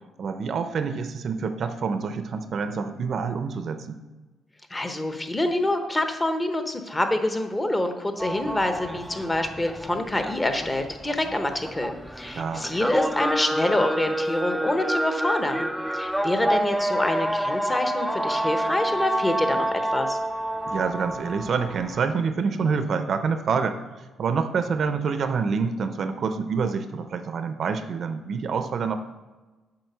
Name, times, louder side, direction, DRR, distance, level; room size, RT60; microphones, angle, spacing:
voice 1, 0.2-4.0 12.3-12.7 20.6-23.8 24.2-29.0, right 5 dB, 55° right, 9 dB, 0.6 m, -27 dB
voice 2, 4.7-11.9 12.2-19.7 19.9-20.2, left 1 dB, 20° left, 7 dB, 0.9 m, -26 dB
sound 1, 8.2-22.0, right 1 dB, ahead, 0.4 m, -28 dB
7.7 x 4.3 x 5.6 m, 1.2 s
cardioid pair, 90°, 0 cm